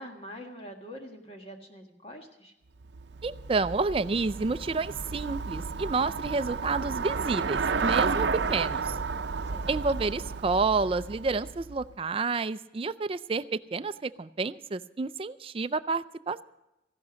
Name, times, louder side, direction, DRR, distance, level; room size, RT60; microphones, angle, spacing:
voice 1, 0.0-2.5 9.5-9.7, equal, 35° left, 2 dB, 1.6 m, -44 dB
Traffic noise roadway noise / Bicycle, 2.8-12.0, right 5 dB, 75° right, 0.6 m, -32 dB
voice 2, 3.2-9.0 9.7-16.4, right 4 dB, 30° right, 14 dB, 0.4 m, -29 dB
15.5 x 12.0 x 5.0 m, 0.93 s
head